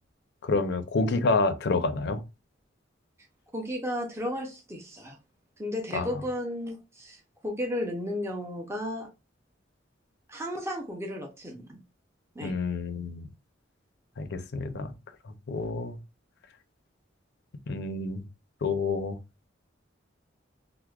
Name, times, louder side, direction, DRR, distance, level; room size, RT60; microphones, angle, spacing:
voice 1, 0.4-2.2 5.9-6.2 12.4-13.3 14.2-14.9 15.2-16.0 17.7-18.2 18.6-19.2, left 3 dB, 60° left, 0.5 m, -28 dB
voice 2, 3.5-5.2 5.6-7.2 7.4-9.1 10.3-11.8 12.4-12.5, left 1 dB, 15° right, 0.5 m, -33 dB
4.6 x 2.1 x 2.3 m
head